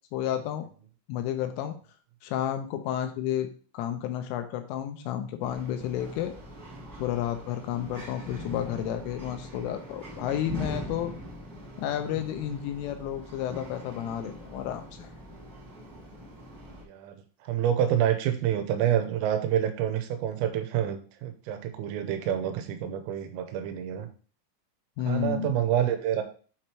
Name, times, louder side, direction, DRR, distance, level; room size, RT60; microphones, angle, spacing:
voice 1, 0.1-0.7 1.1-1.8 2.2-3.5 3.7-6.3 7.0-11.1 11.8-15.1 25.0-25.5, left 11 dB, 80° left, 7 dB, 3.1 m, -31 dB
sound 1, 5.4-16.8, equal, 60° right, 0.9 m, -42 dB
voice 2, 16.8-17.2 17.4-24.1 25.1-26.2, right 10 dB, 85° right, 7 dB, 3.4 m, -27 dB
8.3 x 3.1 x 4.4 m, 0.40 s
omnidirectional pair, 5.9 m